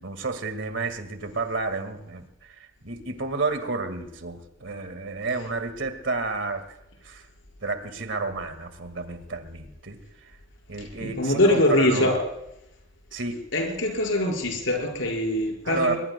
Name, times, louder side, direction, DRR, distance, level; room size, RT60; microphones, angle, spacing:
voice 1, 0.0-6.6 7.0-7.3 7.6-10.0 10.7-12.1 13.1-13.4 15.6-15.9, right 3 dB, 65° right, 8 dB, 2.1 m, -31 dB
voice 2, 11.0-12.2 13.5-16.0, left 1 dB, 70° left, 1 dB, 5.6 m, -23 dB
23.0 x 22.0 x 2.3 m, 0.86 s
head